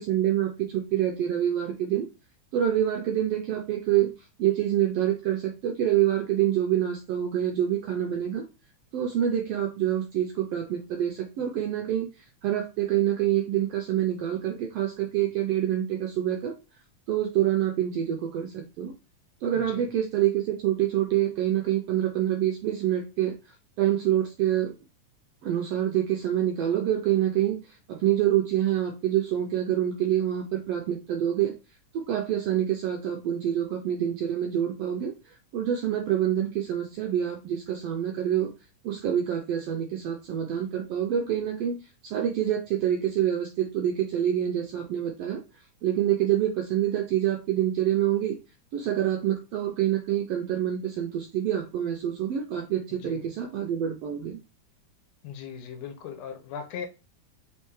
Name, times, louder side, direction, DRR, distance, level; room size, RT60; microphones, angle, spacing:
voice 1, 0.0-2.1 2.5-4.1 4.4-8.4 8.9-16.5 17.1-18.9 19.4-24.7 25.4-31.5 31.9-38.5 38.8-45.4 45.8-48.4 48.7-54.4, right 11 dB, 90° right, 1.4 m, -26 dB
voice 2, 55.2-56.9, left 7 dB, 70° left, 1.8 m, -38 dB
4.4 x 3.6 x 3.0 m
omnidirectional pair, 3.5 m